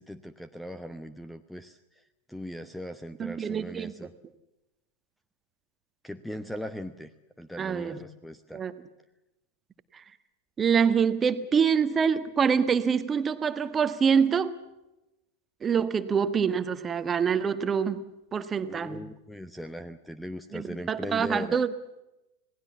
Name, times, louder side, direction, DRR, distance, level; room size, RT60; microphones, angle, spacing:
voice 1, 0.0-2.0 2.3-4.1 6.0-7.1 7.4-8.6 18.6-21.6, equal, ahead, 12 dB, 1.0 m, -39 dB
voice 2, 3.2-3.9 7.6-8.0 8.5-8.7 9.9-10.0 10.6-14.5 15.6-18.0 18.3-19.0 20.5-21.7, right 6 dB, 20° right, 11 dB, 1.4 m, -25 dB
27.0 x 19.0 x 7.2 m, 0.94 s
figure-of-eight pair, 90°, 0 cm